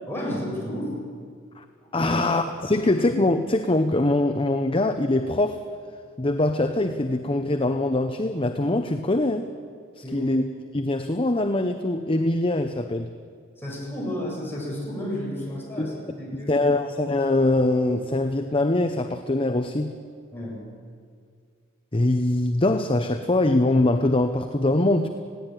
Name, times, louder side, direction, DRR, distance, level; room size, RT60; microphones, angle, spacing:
voice 1, 0.1-1.0 1.9-2.3 2.7-2.8 10.0-10.3 13.6-16.6 20.3-20.6, left 1 dB, 10° left, -4 dB, 7.4 m, -32 dB
voice 2, 1.9-5.6 6.2-9.5 10.0-10.4 10.7-13.1 15.8-15.9 16.5-20.0 21.9-25.1, left 2 dB, 30° left, 7 dB, 0.8 m, -23 dB
19.5 x 16.5 x 9.3 m, 2.1 s
head